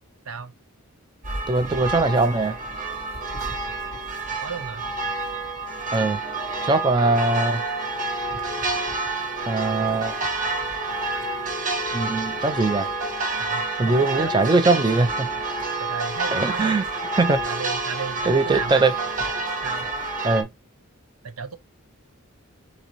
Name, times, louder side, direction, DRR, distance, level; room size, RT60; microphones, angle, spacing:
sound 1, 1.2-20.4, right 3 dB, 40° right, 0.9 m, -28 dB
voice 1, 1.5-2.6 5.9-6.2 6.6-7.6 9.5-10.1 11.9-12.9 13.8-15.3 16.3-16.9 17.2-17.4 18.3-18.9 20.2-20.5, right 3 dB, 20° right, 0.4 m, -21 dB
voice 2, 4.4-4.8 13.4-15.0 15.8-16.8 17.5-18.8 19.6-19.9 21.2-21.5, right 5 dB, 85° right, 0.7 m, -34 dB
4.2 x 3.8 x 2.9 m
head